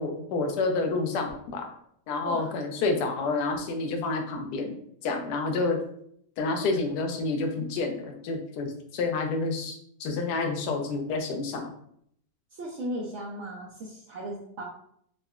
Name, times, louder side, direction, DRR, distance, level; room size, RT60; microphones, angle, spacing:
voice 1, 0.0-1.7 2.1-4.7 5.0-5.8 6.4-11.7, left 3 dB, 75° left, 3 dB, 1.1 m, -29 dB
voice 2, 12.6-14.6, right 1 dB, 75° right, -3 dB, 0.6 m, -36 dB
3.8 x 2.1 x 2.3 m, 0.68 s
omnidirectional pair, 1.8 m